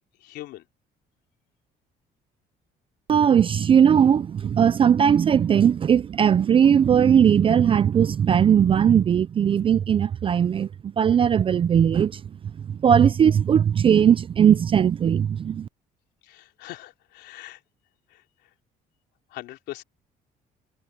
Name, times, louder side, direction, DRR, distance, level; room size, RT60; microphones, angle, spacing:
voice 1, 0.2-0.6 16.2-17.6 18.1-18.2 19.3-19.8, left 15 dB, 85° left, 3.5 m, -41 dB
voice 2, 3.1-10.7 11.0-12.2 12.7-15.7, right 8 dB, 30° right, 0.4 m, -18 dB
cardioid pair, 110°, 17 cm